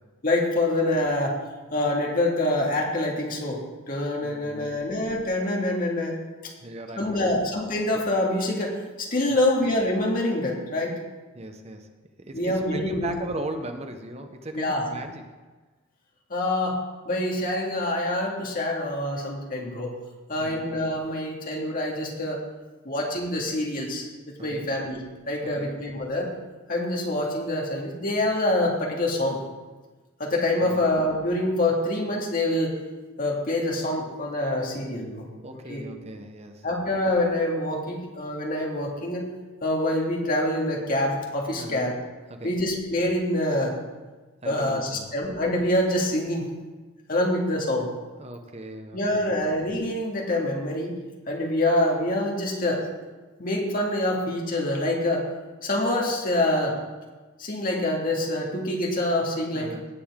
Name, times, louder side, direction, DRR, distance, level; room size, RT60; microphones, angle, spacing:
voice 1, 0.2-1.4 1.7-6.2 6.4-6.5 7.0-11.0 12.3-13.1 14.5-14.9 16.3-16.8 17.0-20.0 20.3-22.4 22.8-24.1 24.4-26.3 26.7-29.4 30.2-32.8 33.2-35.3 35.7-35.9 36.6-39.3 39.6-41.9 42.4-43.8 44.5-46.5 47.1-47.9 48.9-51.0 51.3-52.8 53.4-55.3 55.6-56.8 57.4-59.7, left 1 dB, 40° left, -1 dB, 2.0 m, -26 dB
voice 2, 4.2-4.8 6.6-7.4 9.3-9.4 11.3-11.9 12.2-15.2 20.4-20.6 24.5-24.7 25.6-25.7 30.7-30.8 35.4-36.7 41.6-41.8 42.3-42.5 44.4-45.1 48.2-49.4 59.5-59.9, right 1 dB, 30° right, 6 dB, 0.8 m, -38 dB
17.5 x 7.0 x 3.6 m, 1.3 s
head